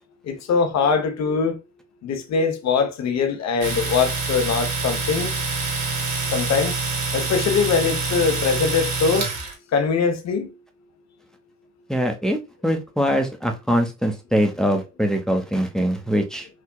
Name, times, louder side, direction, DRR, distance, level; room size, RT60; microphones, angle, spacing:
voice 1, 0.3-1.6 2.0-5.3 6.3-6.8 7.1-9.3 9.7-10.5, left 5 dB, 60° left, 0.9 m, -22 dB
Domestic sounds home sounds, 3.6-9.5, right 4 dB, 65° right, 1.7 m, -26 dB
voice 2, 11.9-12.4 12.6-16.5, equal, ahead, 0.7 m, -22 dB
4.7 x 2.7 x 2.2 m
cardioid pair, 90°, 30 cm